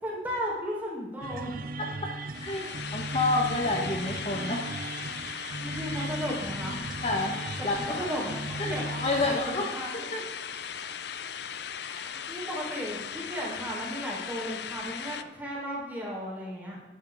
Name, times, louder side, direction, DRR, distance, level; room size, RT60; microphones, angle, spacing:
voice 1, 0.0-1.5 2.7-2.8 3.1-3.2 5.6-6.8 7.8-8.9 9.2-10.1 11.2-11.3 12.1-16.8, equal, 10° right, -4 dB, 3.6 m, -35 dB
sound 1, 1.2-9.4, right 2 dB, 50° right, 0.6 m, -37 dB
voice 2, 1.8-2.1 2.4-4.7 7.0-7.4 7.6-8.0 8.6-10.2 11.9-12.0, left 2 dB, 30° left, 1 dB, 1.1 m, -29 dB
sound 2, 2.3-15.2, left 8 dB, 60° left, 0.6 m, -38 dB
12.0 x 10.0 x 3.5 m, 1.3 s
head